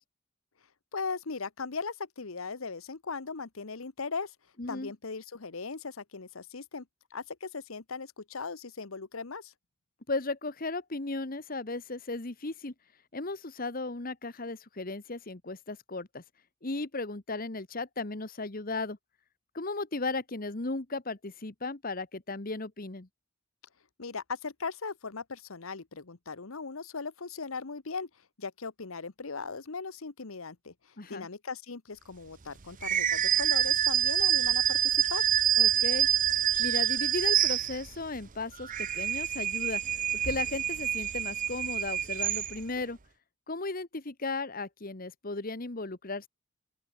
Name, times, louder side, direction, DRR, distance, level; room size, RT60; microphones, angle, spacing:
voice 1, 0.9-4.3 4.7-6.8 7.1-9.5 24.0-28.1 28.4-30.7 31.1-35.2, left 4 dB, 85° left, 1.1 m, -38 dB
voice 2, 4.6-4.9 10.1-12.7 13.1-16.2 16.6-19.0 19.5-23.1 31.0-31.3 35.6-36.1 36.6-39.8 40.2-43.0 43.5-46.3, left 3 dB, 45° left, 1.3 m, -35 dB
sound 1, 32.8-38.1 38.5-42.8, right 10 dB, 40° right, 0.7 m, -27 dB
open air
head